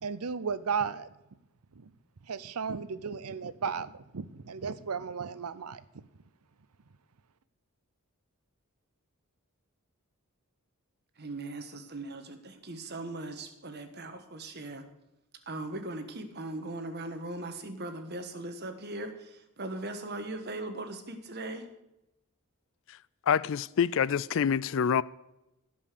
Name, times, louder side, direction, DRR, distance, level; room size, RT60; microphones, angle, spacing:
voice 1, 0.0-1.1 1.8-1.9 2.2-5.8, right 6 dB, 90° right, 0.7 m, -34 dB
voice 2, 11.2-14.8 15.5-21.7, right 2 dB, 50° right, 1.4 m, -39 dB
voice 3, 23.3-25.0, left 7 dB, 60° left, 0.4 m, -26 dB
16.5 x 5.6 x 6.7 m
head